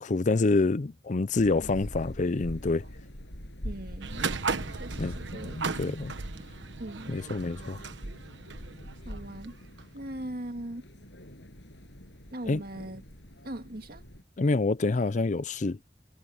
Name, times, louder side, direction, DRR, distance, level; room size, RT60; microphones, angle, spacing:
voice 1, 0.0-2.8 5.0-6.1 7.1-7.8 12.5-12.6 14.4-15.8, left 3 dB, 40° left, 0.5 m, -27 dB
sound 1, 1.4-14.2, equal, 70° left, 7.8 m, -44 dB
voice 2, 3.6-4.2 4.8-5.9 6.8-7.2 9.1-9.6 9.9-10.9 12.3-13.0 13.4-14.0, right 1 dB, 55° right, 2.2 m, -40 dB
sound 2, 4.0-9.9, right 4 dB, 80° right, 1.2 m, -36 dB
head